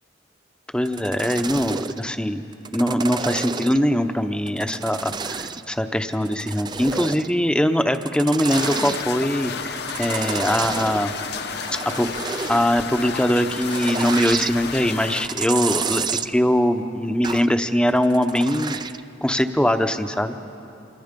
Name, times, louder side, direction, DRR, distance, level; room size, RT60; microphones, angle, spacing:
voice 1, 0.7-2.4 2.7-11.1 12.0-12.1 12.5-18.8 19.2-20.4, equal, 5° left, 7 dB, 0.8 m, -22 dB
sound 1, 0.8-2.0 2.5-3.9 4.5-5.7 6.1-7.3 7.8-9.0 9.8-11.0 11.4-12.7 13.3-14.5 15.0-16.3 17.2-17.5 17.9-19.0 19.4-19.5, right 5 dB, 20° right, 0.4 m, -30 dB
sound 2, 8.5-15.3, left 5 dB, 60° left, 1.0 m, -31 dB
28.5 x 26.0 x 5.3 m, 2.9 s
head